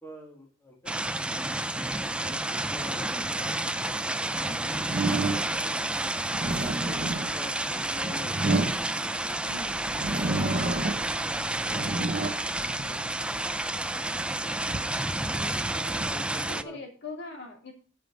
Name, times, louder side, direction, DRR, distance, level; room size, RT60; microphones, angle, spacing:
voice 1, 0.0-0.9 2.2-6.0 6.5-7.0 7.3-8.4 9.2-9.6 10.2-11.3 11.7-14.9 15.7-16.8, left 1 dB, 10° left, -1 dB, 2.0 m, -47 dB
sound 1, 0.9-16.6, right 2 dB, 5° right, 0.4 m, -30 dB
sound 2, 4.8-5.7 6.2-9.4 9.9-11.2 11.5-13.4 14.0-16.1, right 2 dB, 40° right, 0.8 m, -31 dB
voice 2, 6.7-7.1 9.5-9.8 15.2-15.7 16.3-17.7, left 1 dB, 60° left, 1 dB, 3.2 m, -42 dB
sound 3, 9.1-16.2, right 2 dB, 85° right, 1.4 m, -49 dB
8.6 x 5.8 x 7.7 m, 0.39 s
head